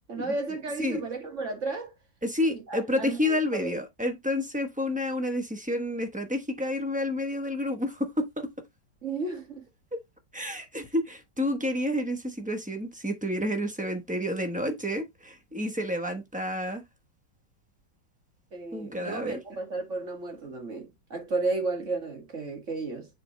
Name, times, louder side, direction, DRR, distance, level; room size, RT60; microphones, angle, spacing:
voice 1, 0.1-1.9 2.5-3.8 9.0-9.6 18.5-23.1, right 3 dB, 40° right, 2.3 m, -33 dB
voice 2, 2.2-8.5 9.9-10.0 10.3-16.8 18.7-19.4, left 1 dB, 5° right, 0.6 m, -30 dB
7.3 x 4.4 x 3.1 m
omnidirectional pair, 2.0 m